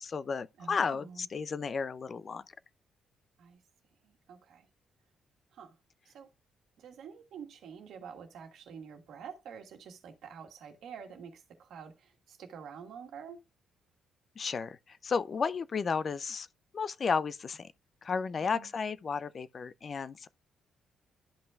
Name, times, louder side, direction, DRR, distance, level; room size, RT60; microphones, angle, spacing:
voice 1, 0.0-2.4 14.4-16.5 16.7-17.7 18.0-20.3, left 5 dB, 45° left, 0.4 m, -33 dB
voice 2, 0.6-1.3 3.4-3.6 4.0-4.7 5.5-5.8 6.0-6.3 6.8-13.4 18.4-18.7, right 7 dB, 75° right, 1.5 m, -48 dB
12.5 x 5.5 x 2.3 m
cardioid pair, 90°, 0 cm